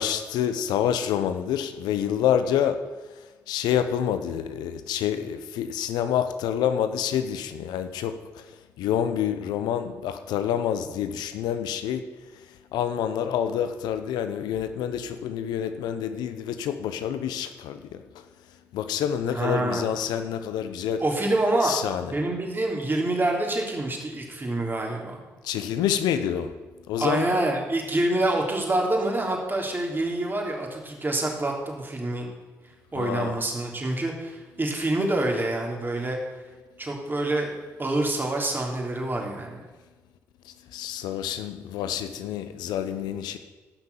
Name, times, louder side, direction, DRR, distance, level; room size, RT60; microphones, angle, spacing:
voice 1, 0.0-2.8 3.5-8.2 8.8-12.0 12.7-18.0 18.7-21.0 21.6-22.1 25.4-26.5 26.9-27.3 32.9-33.3 40.7-43.4, left 9 dB, 85° left, 10 dB, 0.8 m, -27 dB
voice 2, 19.3-19.9 21.0-25.2 27.0-32.3 32.9-36.2 36.8-37.5 37.8-39.6, right 2 dB, 30° right, 0 dB, 3.5 m, -26 dB
15.0 x 6.1 x 7.0 m, 1.2 s
supercardioid pair, 50°, 7 cm